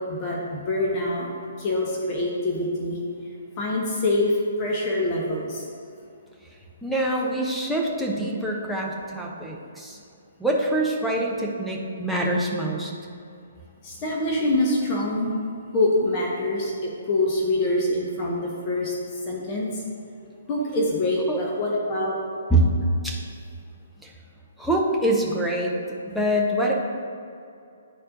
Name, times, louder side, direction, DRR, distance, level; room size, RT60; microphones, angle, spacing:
voice 1, 0.0-1.3 1.6-3.0 3.6-5.7 13.8-15.3 15.7-18.9 19.3-19.8 20.5-22.2, left 1 dB, 30° left, -3 dB, 0.9 m, -25 dB
voice 2, 6.8-10.0 10.4-12.9 21.3-21.4 22.5-22.6 23.0-23.2 24.0-24.1 24.6-25.7 26.1-26.7, right 1 dB, ahead, -3 dB, 0.7 m, -25 dB
10.0 x 4.3 x 2.6 m, 2.5 s
figure-of-eight pair, 125°, 0 cm